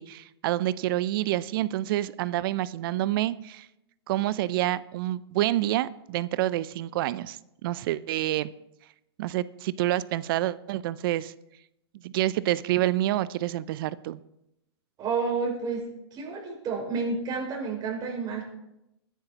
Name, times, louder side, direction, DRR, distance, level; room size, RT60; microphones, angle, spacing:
voice 1, 0.0-3.7 4.1-8.5 9.2-11.3 12.0-14.2, right 15 dB, 55° right, 18 dB, 0.5 m, -28 dB
voice 2, 15.0-15.8 16.1-18.4, right 4 dB, 30° right, -1 dB, 5.3 m, -30 dB
22.5 x 10.0 x 2.9 m, 0.86 s
hypercardioid pair, 125°, 14 cm